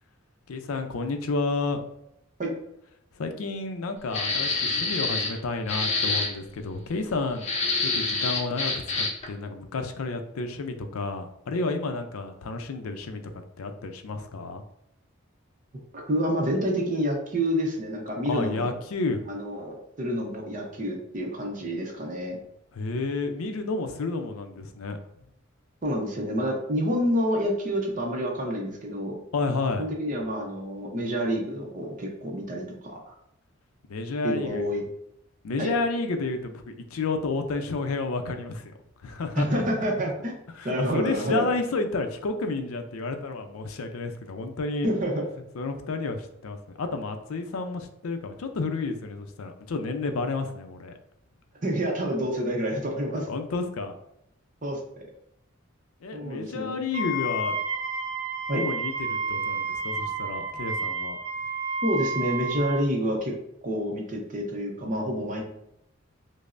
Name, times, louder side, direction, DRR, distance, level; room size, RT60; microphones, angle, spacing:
voice 1, 0.5-1.8 3.2-7.5 7.8-13.2 13.6-14.6 18.2-19.3 22.7-25.0 29.3-29.9 33.9-34.7 35.4-38.7 39.0-39.6 40.6-44.9 45.5-50.9 53.3-54.0 56.0-57.5 58.5-61.2, left 3 dB, 85° left, 6 dB, 0.5 m, -31 dB
sound 1, 4.1-5.4 5.7-6.3 7.4-9.3, left 3 dB, 30° left, 0.6 m, -27 dB
voice 2, 15.9-18.7 19.3-22.4 25.8-29.2 29.8-33.1 34.2-34.8 35.6-35.7 39.4-40.3 40.6-41.5 44.8-45.2 51.6-53.3 54.6-54.8 56.1-56.7 58.5-58.6 61.8-63.3 63.6-65.4, equal, 35° right, 0 dB, 0.6 m, -28 dB
Wind instrument woodwind instrument, 56.9-62.8, right 3 dB, 55° right, 1.0 m, -30 dB
5.1 x 2.0 x 2.5 m, 0.80 s
head